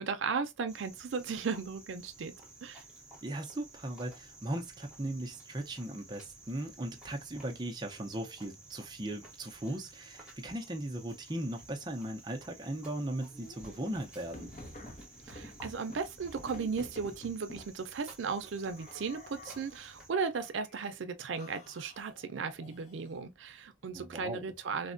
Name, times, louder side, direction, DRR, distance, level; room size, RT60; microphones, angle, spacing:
voice 1, 0.0-2.3 2.6-2.8 15.3-24.9, right 5 dB, 90° right, 0.5 m, -36 dB
Cricket, 0.7-20.1, right 2 dB, 5° right, 1.0 m, -54 dB
voice 2, 3.2-14.5 23.9-24.4, right 1 dB, 25° right, 0.5 m, -38 dB
sound 1, 13.3-17.8 18.6-19.9 20.3-20.9 21.4-23.2, left 1 dB, 40° left, 0.6 m, -50 dB
3.3 x 2.1 x 2.5 m
head